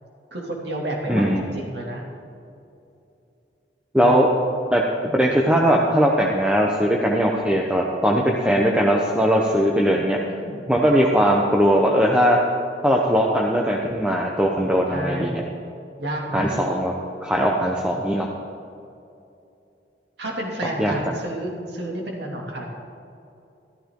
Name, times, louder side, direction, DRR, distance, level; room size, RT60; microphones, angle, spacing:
voice 1, 0.3-2.0 4.0-4.4 10.3-10.7 14.9-15.4 16.0-16.5 20.2-22.6, right 1 dB, 75° right, -1 dB, 2.5 m, -30 dB
voice 2, 1.1-1.5 3.9-4.3 4.7-10.2 10.7-12.4 12.8-15.4 16.3-16.9 17.2-18.3 20.8-20.9, equal, 5° right, -1 dB, 0.8 m, -19 dB
13.5 x 13.5 x 3.8 m, 2.7 s
head